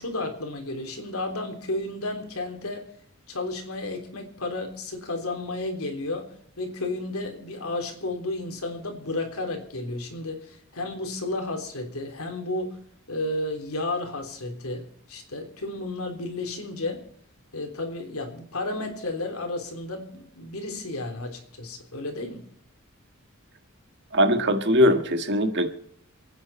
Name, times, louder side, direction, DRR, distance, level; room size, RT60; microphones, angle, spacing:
voice 1, 0.0-2.8 3.3-6.3 6.6-12.8 13.1-17.0 17.5-22.5, left 2 dB, 75° left, 4 dB, 3.6 m, -32 dB
voice 2, 24.1-25.7, equal, 55° right, 7 dB, 1.7 m, -21 dB
28.5 x 9.7 x 4.3 m, 0.64 s
head